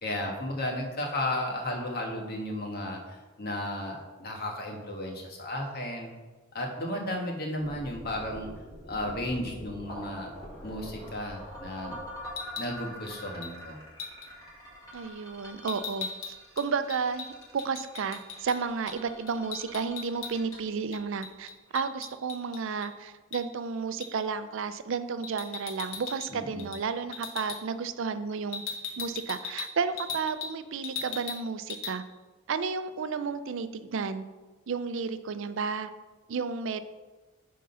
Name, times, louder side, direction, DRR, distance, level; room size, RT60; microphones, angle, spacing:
voice 1, 0.0-6.1 6.5-8.5 8.9-10.3 10.6-12.0 12.5-13.8 26.3-26.6, left 1 dB, 50° left, 1 dB, 1.4 m, -34 dB
sound 1, 7.6-21.7, equal, 20° left, 2.7 m, -45 dB
sound 2, 12.3-12.7 13.4-13.6 14.0-14.3 15.7-18.6 18.9-19.0 19.3-20.6 20.9-22.9 23.3-23.5 24.0-24.2 25.2-26.3 26.6-26.8 27.1-27.6 28.5-30.6 30.8-31.4 31.7-31.9, left 5 dB, 65° left, 1.0 m, -39 dB
voice 2, 14.9-16.1 16.6-28.6 29.0-32.0 32.5-34.2 34.7-35.9 36.3-36.8, right 5 dB, 65° right, 12 dB, 0.4 m, -32 dB
9.5 x 3.7 x 5.5 m, 1.2 s
head